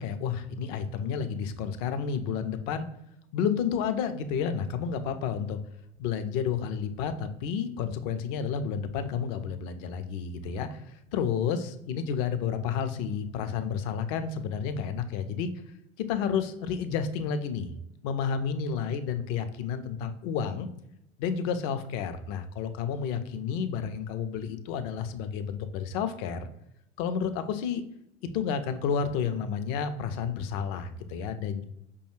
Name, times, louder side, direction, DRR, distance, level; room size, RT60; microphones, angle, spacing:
voice 1, 0.0-2.9 3.3-5.6 6.0-15.5 16.0-17.7 18.0-20.7 21.2-26.5 27.0-27.8 28.3-31.6, left 7 dB, 50° left, 10 dB, 0.5 m, -31 dB
5.0 x 2.3 x 3.0 m, 0.80 s
hypercardioid pair, 75°, 38 cm